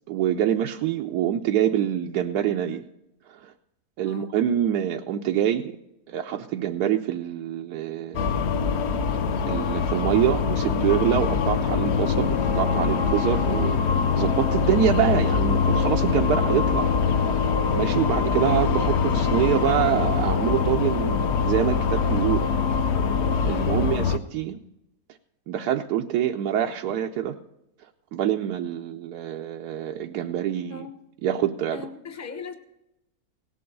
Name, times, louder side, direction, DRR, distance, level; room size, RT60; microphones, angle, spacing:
voice 1, 0.1-2.8 3.3-3.5 4.0-5.8 6.1-8.3 9.5-16.9 17.7-22.5 23.5-24.6 25.5-27.4 28.1-30.9 31.2-31.9, right 10 dB, 90° right, 3 dB, 1.2 m, -25 dB
sound 1, 8.1-24.2, left 6 dB, 55° left, 0.9 m, -23 dB
voice 2, 23.7-24.0 30.7-31.0 31.7-32.5, left 4 dB, 15° left, 6 dB, 0.7 m, -39 dB
17.5 x 7.8 x 5.3 m, 0.88 s
omnidirectional pair, 1.6 m